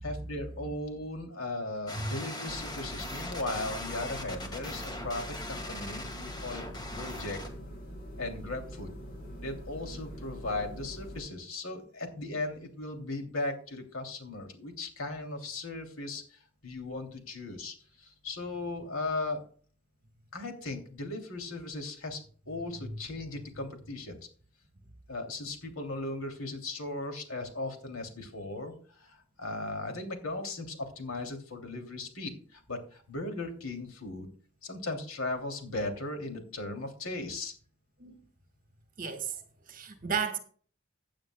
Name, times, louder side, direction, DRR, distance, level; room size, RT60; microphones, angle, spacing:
voice 1, 0.0-6.6 6.9-7.4 8.2-8.9 9.4-19.4 20.3-22.2 22.5-24.2 25.1-34.3 34.6-37.5, left 2 dB, 90° left, 2.9 m, -37 dB
sound 1, 1.9-7.5, left 1 dB, 20° left, 1.6 m, -40 dB
sound 2, 2.5-11.2, equal, 45° left, 6.1 m, -44 dB
voice 2, 39.0-39.4 39.7-40.4, right 6 dB, 40° right, 1.6 m, -33 dB
15.5 x 8.9 x 2.3 m
head